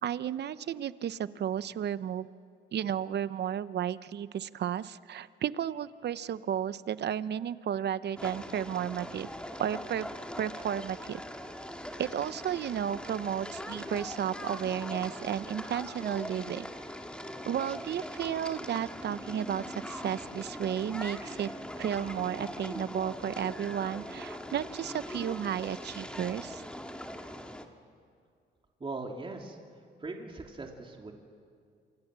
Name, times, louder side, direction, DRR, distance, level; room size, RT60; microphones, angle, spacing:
voice 1, 0.0-2.3 2.7-9.3 9.6-10.1 10.4-11.2 12.0-16.7 17.5-21.5 21.8-26.6, right 9 dB, 60° right, 15 dB, 0.8 m, -33 dB
sound 1, 8.2-27.6, equal, 5° left, 2.1 m, -41 dB
voice 2, 28.8-29.6 30.0-31.1, right 3 dB, 25° right, 1 dB, 3.1 m, -40 dB
27.5 x 26.0 x 7.5 m, 2.2 s
cardioid pair, 90°, 20 cm